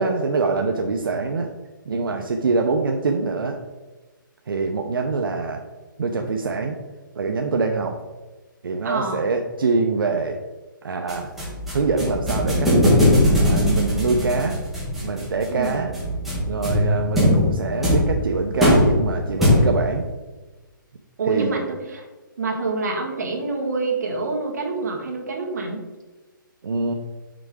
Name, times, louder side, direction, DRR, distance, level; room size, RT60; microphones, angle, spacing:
voice 1, 0.0-1.5 1.9-3.6 4.5-5.6 6.0-6.8 7.2-8.0 8.6-10.4 10.8-11.3 11.7-12.8 13.4-14.6 15.0-15.9 16.5-20.0 21.2-21.6 26.6-26.9, right 4 dB, 80° right, 3 dB, 0.7 m, -24 dB
voice 2, 8.8-9.3 15.5-15.8 17.2-17.4 21.2-22.0 22.4-25.8, right 3 dB, 50° right, 1 dB, 1.7 m, -27 dB
sound 1, 11.1-20.0, left 1 dB, ahead, 1.6 m, -20 dB
6.0 x 4.6 x 4.9 m, 1.2 s
hypercardioid pair, 170°, 11 cm